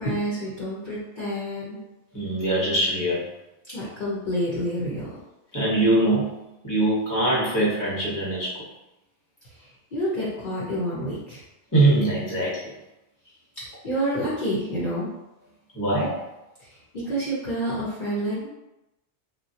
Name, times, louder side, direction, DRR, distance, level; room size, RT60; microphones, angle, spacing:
voice 1, 0.0-1.8 3.7-5.1 9.9-11.4 13.6-15.1 17.0-18.5, equal, 50° left, -8 dB, 0.8 m, -28 dB
voice 2, 2.1-3.2 5.5-8.6 11.7-12.6 15.7-16.2, right 2 dB, 20° left, -7 dB, 0.8 m, -23 dB
3.1 x 2.2 x 2.7 m, 0.95 s
omnidirectional pair, 1.2 m